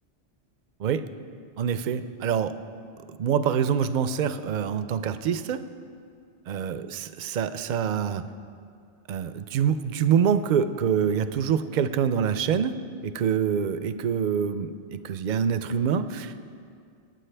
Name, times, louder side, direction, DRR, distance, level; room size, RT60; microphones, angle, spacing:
voice 1, 1.6-2.6 3.1-5.6 6.5-8.3 9.1-16.5, right 7 dB, 60° right, 12 dB, 0.5 m, -26 dB
22.5 x 9.3 x 3.4 m, 2.3 s
omnidirectional pair, 1.2 m